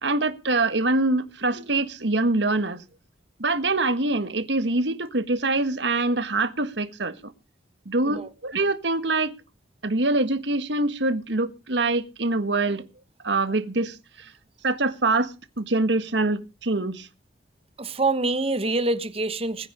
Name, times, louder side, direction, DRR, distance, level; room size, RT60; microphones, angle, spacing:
voice 1, 0.0-2.8 3.4-7.3 7.8-9.3 9.8-12.9 13.2-14.3 14.6-17.1, right 2 dB, 70° right, 1.6 m, -24 dB
voice 2, 17.8-19.7, right 2 dB, 30° right, 1.3 m, -25 dB
20.5 x 10.0 x 5.0 m
head